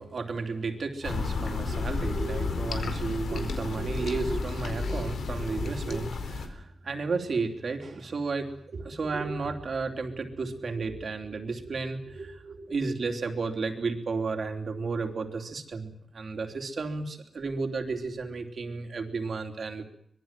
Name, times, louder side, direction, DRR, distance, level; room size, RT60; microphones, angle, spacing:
voice 1, 0.0-19.8, right 4 dB, 50° right, 5 dB, 3.4 m, -33 dB
sound 1, 1.0-6.5, left 4 dB, 85° left, 4.5 m, -32 dB
25.5 x 22.0 x 7.7 m, 0.70 s
wide cardioid pair, 175°, 0 cm